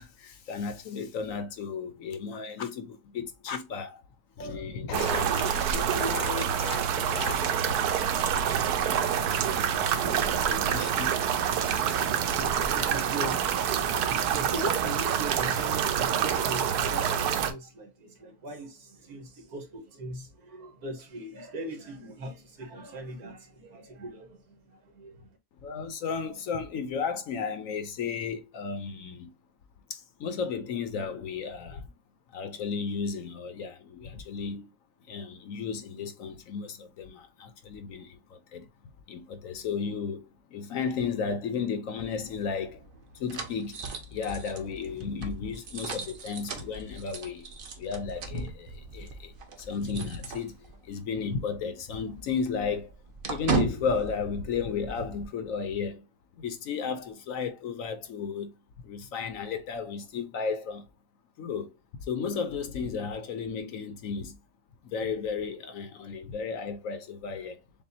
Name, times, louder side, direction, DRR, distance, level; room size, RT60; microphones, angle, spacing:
voice 1, 0.0-4.0 4.4-7.4 7.6-7.8 8.9-9.4 9.9-11.2 11.7-11.9 25.6-29.3 29.9-31.8 32.3-34.7 35.1-38.6 39.1-40.3 40.5-42.8 43.2-43.8 44.1-47.5 47.8-49.3 49.6-50.6 50.9-52.9 53.3-56.0 56.4-58.5 58.8-60.8 61.4-61.7 62.1-64.4 64.8-67.6, left 5 dB, 65° left, 1.0 m, -34 dB
sound 1, 4.9-17.5, right 8 dB, 85° right, 1.2 m, -27 dB
voice 2, 11.6-25.3, right 1 dB, 70° right, 1.7 m, -40 dB
sound 2, 42.1-51.0 51.3-51.4 51.8-55.2, right 5 dB, 45° right, 0.7 m, -37 dB
6.9 x 2.4 x 2.7 m
omnidirectional pair, 1.6 m